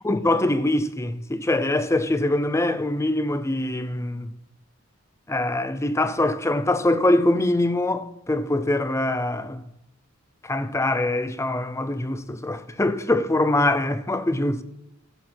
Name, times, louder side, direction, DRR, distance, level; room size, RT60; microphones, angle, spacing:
voice 1, 0.0-4.3 5.3-9.7 10.4-14.6, left 1 dB, 15° left, 0.6 m, -23 dB
12.5 x 7.4 x 5.9 m
head